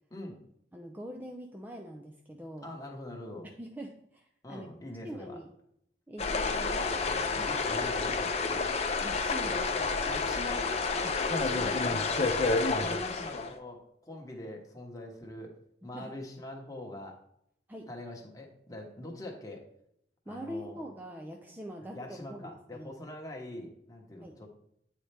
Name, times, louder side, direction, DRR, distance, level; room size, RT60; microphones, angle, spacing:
voice 1, 0.1-0.4 2.6-3.5 4.4-5.4 6.3-6.4 7.4-8.6 10.0-15.5 15.8-17.2 17.9-19.6 20.3-20.9 21.9-24.5, left 1 dB, 20° left, 0 dB, 1.0 m, -43 dB
voice 2, 0.7-2.7 3.6-4.7 5.0-5.5 6.1-7.4 9.0-10.0 15.9-16.1 17.7-17.9 20.3-22.0 22.3-22.9 24.2-24.4, equal, 10° right, 2 dB, 0.4 m, -43 dB
sound 1, 6.2-13.5, left 4 dB, 35° left, 0.6 m, -29 dB
8.6 x 4.2 x 3.3 m, 0.75 s
head